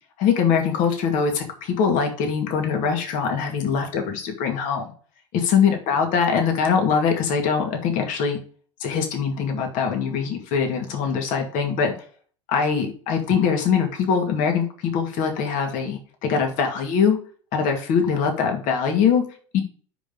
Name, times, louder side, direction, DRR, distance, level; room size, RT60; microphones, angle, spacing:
voice 1, 0.2-4.9 5.3-8.4 8.8-11.9 12.5-17.2 17.5-19.2 19.5-19.6, left 6 dB, 55° left, 3 dB, 2.2 m, -22 dB
5.4 x 5.0 x 5.5 m, 0.43 s
hypercardioid pair, 90°, 16 cm